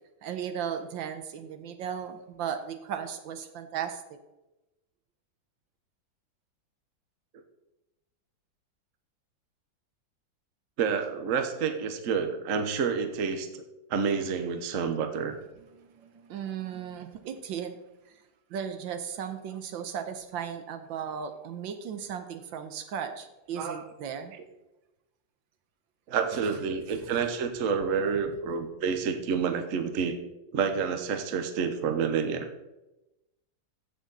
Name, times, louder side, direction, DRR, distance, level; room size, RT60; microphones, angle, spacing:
voice 1, 0.2-4.2 15.7-17.8 18.1-18.2 18.5-24.3 26.3-26.6 26.9-27.1, right 8 dB, 80° right, 8 dB, 1.6 m, -36 dB
voice 2, 10.8-13.6 13.9-15.4 23.6-23.8 26.1-30.2 30.5-32.5, right 6 dB, 50° right, 7 dB, 1.2 m, -29 dB
14.5 x 6.5 x 4.0 m, 0.97 s
omnidirectional pair, 2.1 m